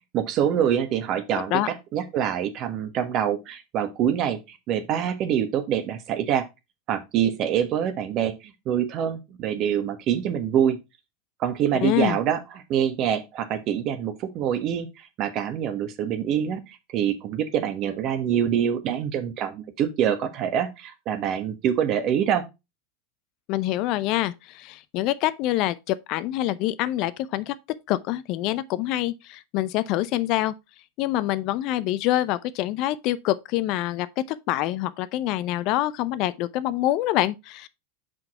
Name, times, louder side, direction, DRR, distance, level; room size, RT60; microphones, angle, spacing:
voice 1, 0.1-6.4 6.9-10.8 11.4-22.4, right 9 dB, 45° right, 1.4 m, -25 dB
voice 2, 11.8-12.2 23.5-27.5 27.9-30.5 31.0-37.7, left 15 dB, 55° left, 0.5 m, -26 dB
5.9 x 5.3 x 4.2 m
hypercardioid pair, 100°, 0 cm